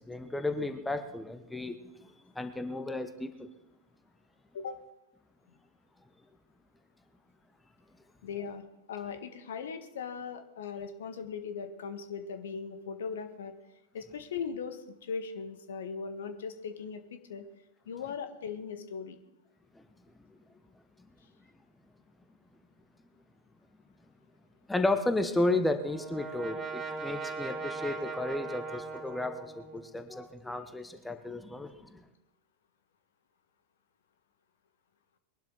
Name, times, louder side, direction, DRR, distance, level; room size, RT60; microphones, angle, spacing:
voice 1, 0.1-1.8 2.3-3.3 19.7-19.8 24.7-32.0, left 2 dB, 5° left, 9 dB, 1.1 m, -33 dB
voice 2, 8.2-13.5 13.9-17.4 17.8-19.2, left 6 dB, 60° left, 8 dB, 1.5 m, -39 dB
Brass instrument, 25.3-30.1, right 4 dB, 15° right, 2.7 m, -40 dB
21.5 x 12.0 x 4.0 m, 0.92 s
figure-of-eight pair, 90°, 0 cm